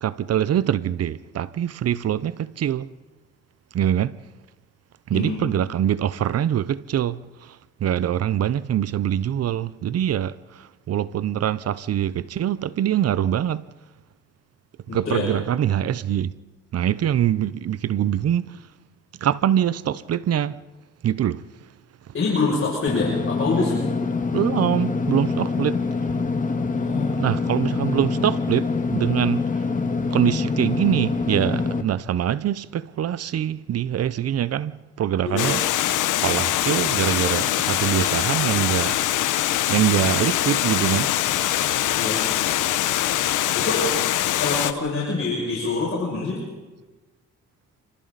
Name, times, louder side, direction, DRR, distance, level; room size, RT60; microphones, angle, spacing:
voice 1, 0.0-2.9 3.7-4.1 5.1-7.2 7.8-10.3 10.9-13.6 14.9-16.3 16.7-18.5 19.2-20.6 21.0-21.4 24.3-25.8 27.2-29.4 30.1-35.6 36.2-39.0 39.7-41.1, right 10 dB, 55° right, 0.8 m, -23 dB
voice 2, 5.1-5.6 14.9-15.3 22.1-23.8 26.7-27.1 35.2-35.5 42.0-42.2 43.5-43.9 44.4-46.4, left 3 dB, 45° left, 7.0 m, -25 dB
Engine / Mechanisms, 22.9-31.8, left 4 dB, 25° left, 1.9 m, -25 dB
Water, 35.4-44.7, left 13 dB, 85° left, 1.1 m, -23 dB
28.0 x 25.5 x 4.2 m
cardioid pair, 90°, 30 cm